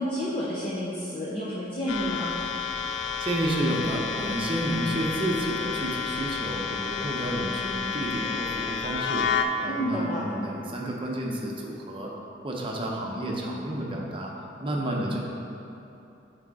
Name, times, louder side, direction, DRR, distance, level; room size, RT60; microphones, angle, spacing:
voice 1, 0.0-2.4 9.6-10.2, equal, 30° left, -7 dB, 0.7 m, -30 dB
sound 1, 1.9-9.5, left 6 dB, 65° left, 0.4 m, -30 dB
voice 2, 3.2-9.3 9.6-12.1 12.4-14.3 14.6-15.2, right 1 dB, 25° right, -1 dB, 0.8 m, -30 dB
6.3 x 4.7 x 4.8 m, 2.8 s
head